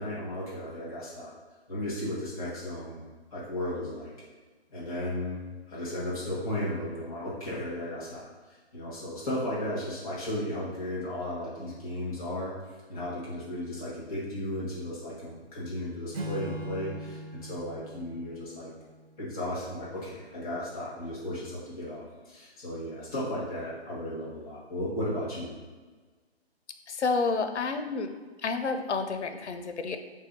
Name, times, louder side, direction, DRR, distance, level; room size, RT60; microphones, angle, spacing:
voice 1, 0.0-1.3 1.7-3.0 3.3-4.1 4.7-5.4 5.7-12.5 12.9-18.7 19.2-25.5, left 1 dB, ahead, -7 dB, 0.4 m, -35 dB
Acoustic guitar / Strum, 16.1-19.6, right 1 dB, 65° right, 0.6 m, -41 dB
voice 2, 26.9-28.1 28.4-30.0, left 4 dB, 90° left, 7 dB, 0.6 m, -29 dB
3.4 x 2.7 x 4.5 m, 1.4 s
hypercardioid pair, 155°, 33 cm